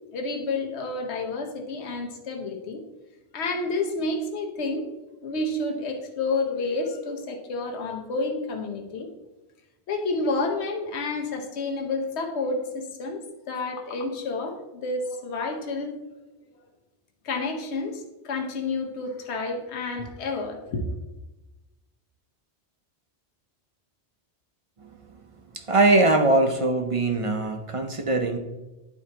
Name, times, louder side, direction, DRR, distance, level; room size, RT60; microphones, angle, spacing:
voice 1, 0.1-2.8 3.3-4.9 5.2-9.1 9.9-16.0 17.2-20.9, left 3 dB, 80° left, 2 dB, 1.1 m, -30 dB
voice 2, 25.5-28.4, right 2 dB, 40° right, 5 dB, 0.5 m, -21 dB
10.5 x 4.5 x 2.8 m, 1.1 s
omnidirectional pair, 1.1 m